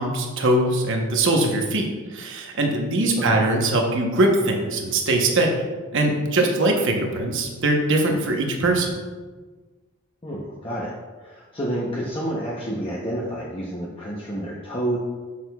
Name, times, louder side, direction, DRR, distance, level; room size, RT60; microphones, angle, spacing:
voice 1, 0.0-5.6 5.9-9.0, right 2 dB, 60° right, 2 dB, 1.0 m, -21 dB
voice 2, 10.2-15.0, right 1 dB, 25° left, -4 dB, 0.7 m, -29 dB
8.2 x 6.4 x 2.3 m, 1.4 s
head